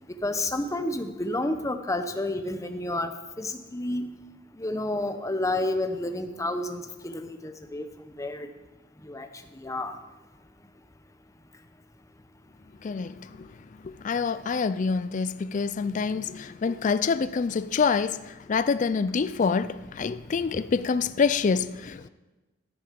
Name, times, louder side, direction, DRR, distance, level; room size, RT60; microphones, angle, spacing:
voice 1, 0.1-4.1 4.5-8.5 9.0-10.0, left 1 dB, 15° left, 0.8 m, -30 dB
voice 2, 12.8-13.5 13.8-22.1, left 5 dB, 40° left, 0.4 m, -26 dB
14.0 x 7.8 x 5.2 m
head